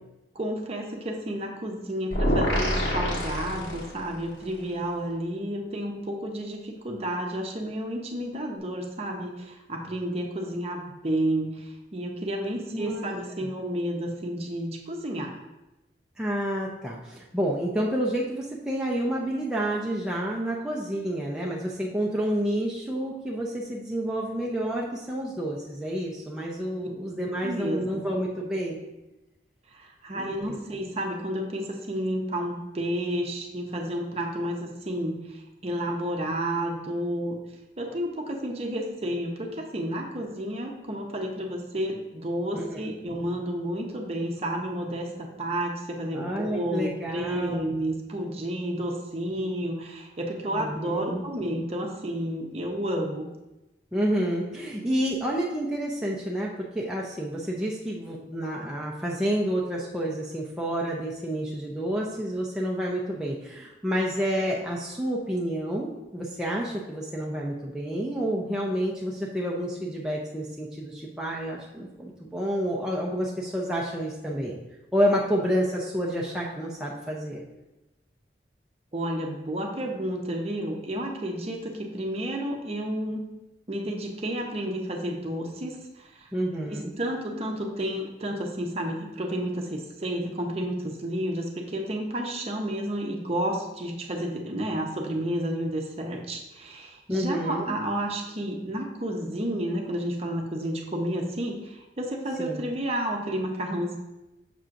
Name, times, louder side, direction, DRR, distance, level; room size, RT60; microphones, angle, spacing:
voice 1, 0.3-15.3 27.4-27.8 29.7-37.4 37.8-53.3 78.9-83.2 83.7-86.3 86.7-104.0, right 1 dB, 35° right, 1 dB, 0.8 m, -31 dB
sound 1, 2.1-4.2, equal, 70° left, 1.6 m, -26 dB
voice 2, 12.7-13.1 13.4-13.5 16.2-28.8 30.1-30.6 42.5-42.8 46.1-47.6 50.5-51.2 53.9-74.5 74.9-77.4 86.3-86.9 97.1-97.7 102.4-102.6, equal, 5° right, -4 dB, 0.6 m, -29 dB
6.7 x 6.0 x 2.5 m, 0.99 s
head